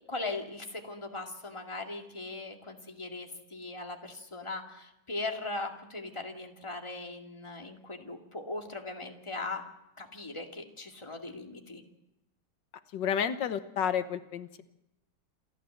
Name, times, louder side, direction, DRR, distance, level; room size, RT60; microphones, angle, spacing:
voice 1, 0.0-9.6 10.0-11.8, left 2 dB, 15° left, 2 dB, 2.2 m, -39 dB
voice 2, 12.9-14.6, left 8 dB, 85° left, 10 dB, 1.7 m, -31 dB
27.5 x 13.5 x 7.8 m, 0.89 s
omnidirectional pair, 1.9 m